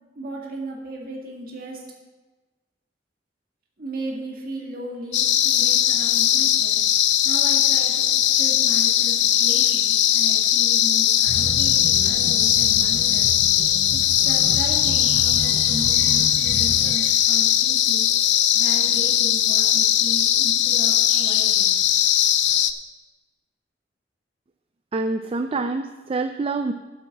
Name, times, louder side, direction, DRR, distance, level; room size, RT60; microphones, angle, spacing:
voice 1, 0.2-1.8 3.8-6.8 7.2-13.3 13.9-18.1 18.5-21.7, right 1 dB, 55° right, -1 dB, 2.1 m, -36 dB
sound 1, 5.1-22.7, left 11 dB, 80° left, 0.5 m, -19 dB
sound 2, 11.2-16.9, equal, 60° left, 3.7 m, -33 dB
voice 2, 24.9-26.7, right 3 dB, 35° right, 8 dB, 0.4 m, -26 dB
8.7 x 8.4 x 6.1 m, 1.2 s
head